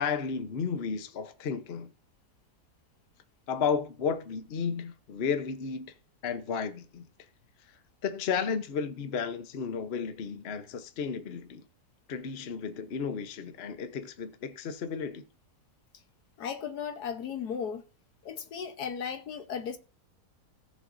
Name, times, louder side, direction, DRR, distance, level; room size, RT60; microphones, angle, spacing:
voice 1, 0.0-1.9 3.5-5.9 6.2-7.0 8.0-11.6 12.1-15.2, left 6 dB, 45° left, 1.0 m, -33 dB
voice 2, 16.4-17.8 18.2-19.8, left 7 dB, 70° left, 1.5 m, -35 dB
18.0 x 6.6 x 2.6 m
omnidirectional pair, 1.8 m